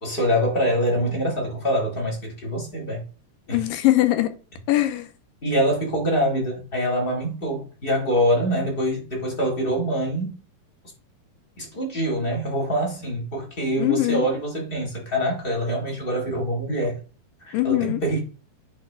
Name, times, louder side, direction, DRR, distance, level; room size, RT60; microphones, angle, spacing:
voice 1, 0.0-3.0 3.5-3.6 5.4-10.3 11.6-17.0 17.4-18.2, equal, 50° left, 0.6 m, -25 dB
voice 2, 3.5-4.3 4.7-5.1 13.8-14.3 17.5-18.0, left 16 dB, 85° left, 2.3 m, -21 dB
9.8 x 3.4 x 3.2 m
omnidirectional pair, 4.1 m